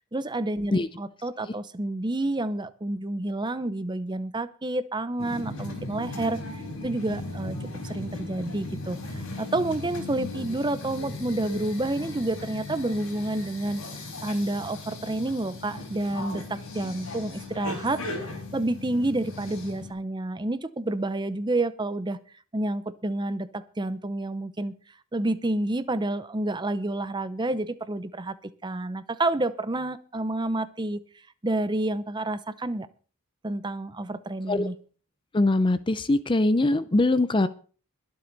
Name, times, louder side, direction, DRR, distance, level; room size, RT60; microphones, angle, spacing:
voice 1, 0.0-6.4 6.8-7.6 7.8-13.8 14.2-22.2 22.5-24.7 25.1-28.3 28.6-31.0 31.4-32.9 33.4-34.7, right 2 dB, 20° right, 14 dB, 0.7 m, -29 dB
sound 1, 5.2-19.9, left 2 dB, 65° left, 4.2 m, -37 dB
voice 2, 35.3-37.5, left 2 dB, 20° left, 14 dB, 0.5 m, -22 dB
22.0 x 7.8 x 4.0 m, 0.39 s
head